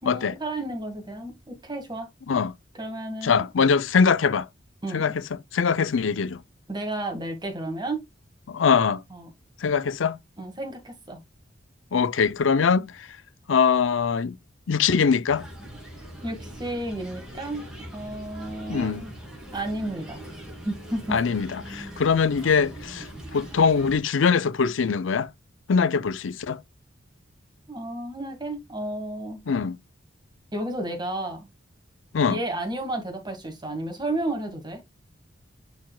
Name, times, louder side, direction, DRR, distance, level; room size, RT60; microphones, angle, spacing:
voice 1, 0.0-2.1 2.8-3.5 4.8-5.1 6.7-8.0 9.1-9.3 10.4-11.2 12.6-12.8 16.2-17.7 17.9-19.1 19.5-20.2 20.7-21.2 27.7-29.4 30.5-31.5 32.3-34.8, right 1 dB, 25° right, 1.8 m, -32 dB
voice 2, 3.2-4.5 4.9-6.4 8.5-9.0 9.6-10.2 11.9-13.1 13.5-14.4 14.7-15.5 18.7-19.0 21.1-23.1 23.3-25.3 25.7-26.6 29.5-29.8 32.1-32.4, left 6 dB, 85° left, 0.5 m, -22 dB
sound 1, 15.3-24.0, equal, 5° right, 2.6 m, -41 dB
10.5 x 4.2 x 2.3 m
head